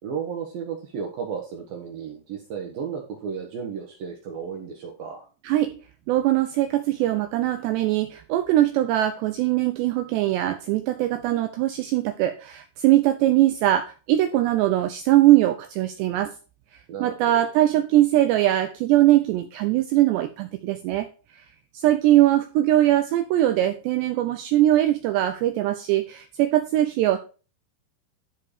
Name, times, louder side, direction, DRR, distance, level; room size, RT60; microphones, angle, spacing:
voice 1, 0.0-5.3 16.9-17.4, right 6 dB, 70° right, 1 dB, 2.3 m, -33 dB
voice 2, 5.4-5.8 6.1-16.3 17.0-21.5 21.7-27.2, right 14 dB, 85° right, 9 dB, 2.4 m, -21 dB
12.5 x 4.6 x 4.9 m, 0.35 s
omnidirectional pair, 5.7 m